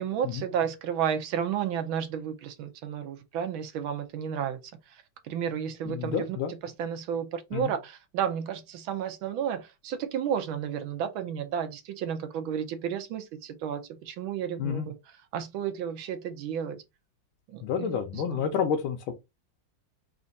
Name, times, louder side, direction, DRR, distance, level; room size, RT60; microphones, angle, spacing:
voice 1, 0.0-4.6 4.9-6.3 6.6-14.9 15.3-16.8 17.5-18.0 18.3-18.5, right 8 dB, 75° right, 1.5 m, -32 dB
voice 2, 5.8-6.5 7.5-7.7 14.6-14.9 17.6-19.1, left 7 dB, 85° left, 1.5 m, -29 dB
4.2 x 2.5 x 3.9 m
omnidirectional pair, 2.2 m